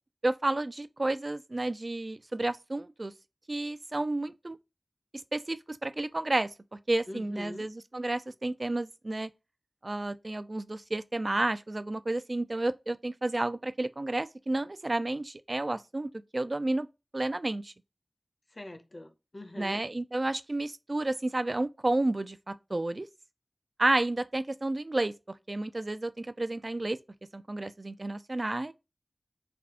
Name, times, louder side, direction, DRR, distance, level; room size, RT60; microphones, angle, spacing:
voice 1, 0.2-3.1 3.5-4.6 5.3-6.5 6.9-9.3 9.8-16.9 17.1-17.7 19.6-23.1 23.8-27.0 27.3-28.7, right 2 dB, 45° right, 0.3 m, -31 dB
voice 2, 7.1-7.7 18.5-19.8, left 1 dB, 45° left, 0.7 m, -43 dB
3.4 x 2.4 x 3.5 m
wide cardioid pair, 65°, 0 cm